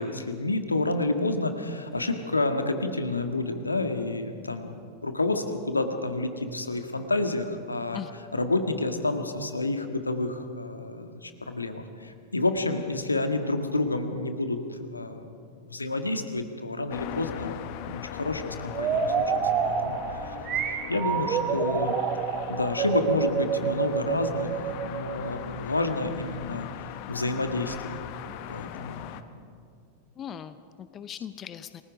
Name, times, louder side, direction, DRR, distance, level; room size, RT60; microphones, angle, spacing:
voice 1, 0.0-4.7 5.0-8.0 8.3-15.3 15.6-19.2 19.6-20.3 20.6-21.9 22.5-26.7 27.1-28.0 28.5-29.1, left 2 dB, 80° left, 6 dB, 1.6 m, -29 dB
sound 1, 16.9-29.2, left 10 dB, 45° left, 1.1 m, -40 dB
sound 2, 18.7-25.4, right 7 dB, 30° right, 1.6 m, -28 dB
voice 2, 30.2-31.8, left 9 dB, 30° left, 13 dB, 0.7 m, -39 dB
29.5 x 20.0 x 5.1 m, 2.3 s
figure-of-eight pair, 90°, 0 cm